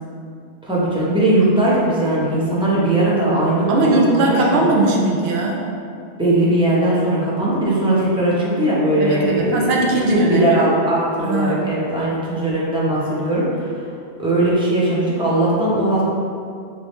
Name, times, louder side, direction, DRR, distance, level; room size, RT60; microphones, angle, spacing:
voice 1, 0.6-4.6 6.2-9.8 10.1-13.9 14.2-16.0, right 1 dB, 5° right, -8 dB, 0.7 m, -19 dB
voice 2, 3.7-5.7 9.0-10.6 11.2-11.6, right 2 dB, 65° right, -1 dB, 0.8 m, -19 dB
4.7 x 3.0 x 3.1 m, 2.4 s
omnidirectional pair, 1.2 m